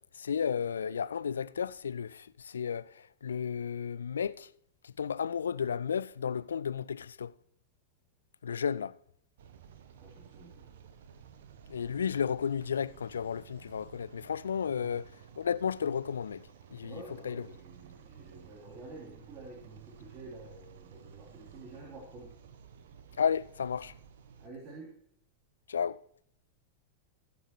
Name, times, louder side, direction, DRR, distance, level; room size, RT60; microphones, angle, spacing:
voice 1, 0.1-4.5 4.8-7.3 8.4-8.9 11.7-17.4 23.2-23.9 25.7-26.0, left 7 dB, 70° left, 0.4 m, -33 dB
sound 1, 9.4-24.5, right 8 dB, 60° right, 1.0 m, -54 dB
voice 2, 10.0-10.7 14.8-15.0 16.8-22.3 24.4-25.0, right 2 dB, 30° right, 3.5 m, -49 dB
20.5 x 7.5 x 3.1 m
figure-of-eight pair, 90°, 0 cm